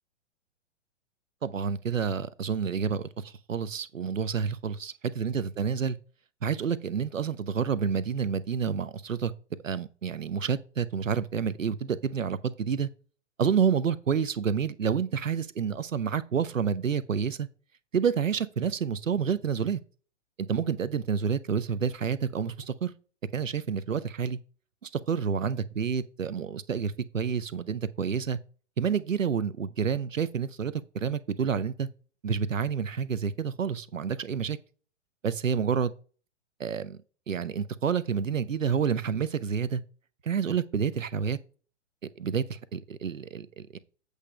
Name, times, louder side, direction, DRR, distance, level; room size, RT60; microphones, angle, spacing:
voice 1, 1.4-6.0 6.4-9.3 9.6-12.9 13.4-17.5 17.9-19.8 20.5-22.9 23.3-24.4 24.8-28.4 28.8-31.9 32.2-34.6 35.2-35.9 36.6-37.0 37.3-39.8 40.2-41.4 42.2-43.8, right 7 dB, 85° right, 0.9 m, -29 dB
8.2 x 3.4 x 6.5 m
hypercardioid pair, 120°, 38 cm